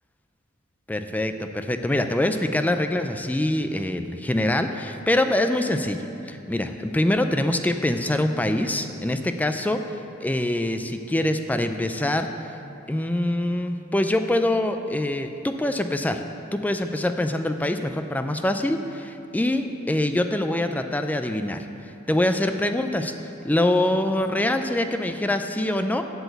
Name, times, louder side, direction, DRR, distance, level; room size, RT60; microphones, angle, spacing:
voice 1, 0.9-12.5 12.9-16.2 16.5-23.1 23.4-26.0, left 1 dB, 10° left, 7 dB, 0.3 m, -24 dB
8.0 x 7.0 x 7.9 m, 2.7 s
head